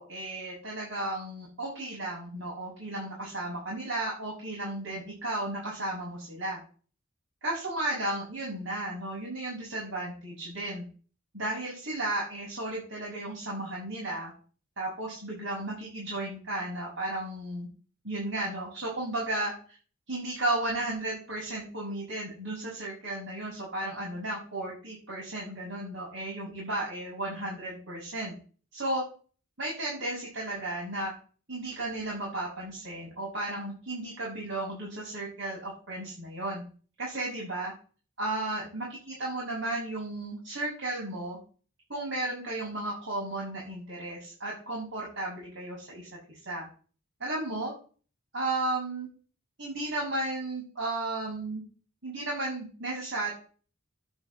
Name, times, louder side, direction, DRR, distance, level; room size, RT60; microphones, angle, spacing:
voice 1, 0.0-6.6 7.4-10.8 11.3-14.3 14.8-17.7 18.0-19.5 20.1-28.4 28.7-29.0 29.6-31.1 31.5-36.6 37.0-37.7 38.2-41.4 41.9-46.7 47.2-47.7 48.3-49.1 49.6-51.6 52.0-53.3, right 2 dB, 60° right, -5 dB, 7.3 m, -34 dB
10.5 x 8.4 x 7.9 m, 0.39 s
head